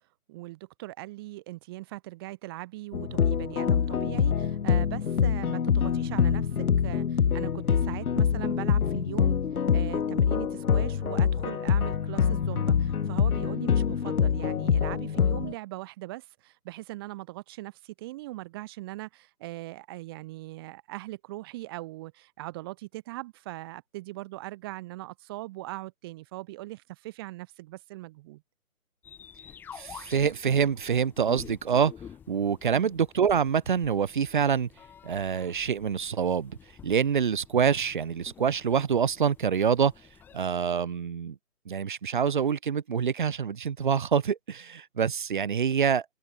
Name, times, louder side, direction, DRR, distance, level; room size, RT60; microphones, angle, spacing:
voice 1, 0.3-9.4 9.7-28.4 32.7-33.0, right 19 dB, 15° right, 4.6 m, -40 dB
sound 1, 2.9-15.5, left 7 dB, 70° left, 0.9 m, -25 dB
sound 2, 29.0-40.4, left 8 dB, 5° left, 2.7 m, -50 dB
voice 2, 29.8-31.9 32.3-34.7 35.0-36.6 36.8-39.9 40.3-41.4 41.7-46.1, right 7 dB, 30° right, 2.2 m, -26 dB
hypercardioid pair, 170°, 45 cm